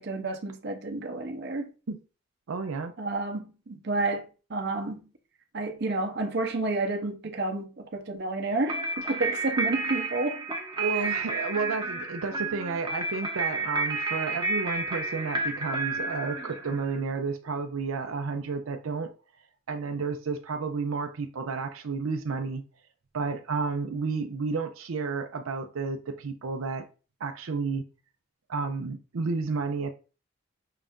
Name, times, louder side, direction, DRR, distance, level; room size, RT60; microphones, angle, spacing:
voice 1, 0.0-1.7 3.0-5.0 5.5-10.5 10.9-11.2, right 2 dB, 55° right, 0.8 m, -30 dB
voice 2, 2.5-2.9 10.8-19.1 19.7-22.6 23.1-26.8 27.2-27.8 28.5-29.9, right 4 dB, 90° right, 0.5 m, -31 dB
sound 1, 8.7-17.0, right 3 dB, 20° right, 0.7 m, -31 dB
5.6 x 2.5 x 3.5 m
head